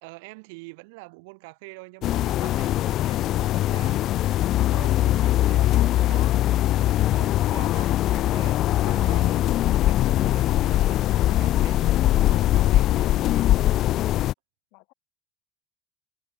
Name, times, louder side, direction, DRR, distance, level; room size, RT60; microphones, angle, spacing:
voice 1, 0.0-4.4 4.7-6.3 7.1-9.5 9.8-13.7, right 28 dB, 90° right, 2.7 m, -45 dB
sound 1, 2.0-14.3, left 14 dB, 45° left, 0.5 m, -21 dB
voice 2, 5.5-6.4 14.7-14.9, left 31 dB, 70° left, 3.3 m, -44 dB
cardioid pair, 155°, 0 cm